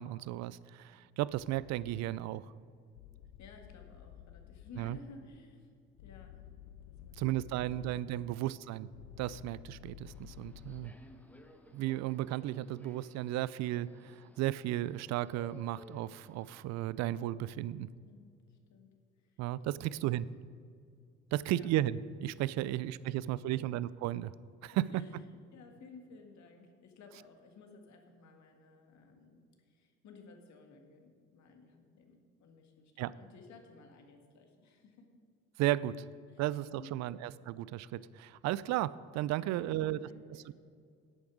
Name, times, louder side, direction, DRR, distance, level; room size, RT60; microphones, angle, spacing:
voice 1, 0.0-2.5 4.8-5.0 7.2-8.9 9.2-10.9 11.7-17.9 19.4-20.3 21.3-24.3 24.6-25.0 33.0-33.1 35.6-35.9 36.4-40.1, right 14 dB, 55° right, 19 dB, 0.5 m, -34 dB
sound 1, 1.3-2.0 3.0-5.1 6.0-8.0 8.9-10.9, left 11 dB, 80° left, 0.6 m, -52 dB
voice 2, 3.4-6.5 6.9-7.9 8.6-8.7 17.9-18.9 19.2-19.4 21.5-21.8 22.5-23.2 23.4-23.6 24.7-35.1 35.7-35.9 36.3-36.4 36.8-37.2 39.4-40.5, left 3 dB, 55° left, 4 dB, 1.9 m, -56 dB
Subway metro underground, 10.0-16.6, left 2 dB, 5° left, 1.1 m, -59 dB
11.5 x 8.5 x 4.9 m, 2.3 s
hypercardioid pair, 60°, 34 cm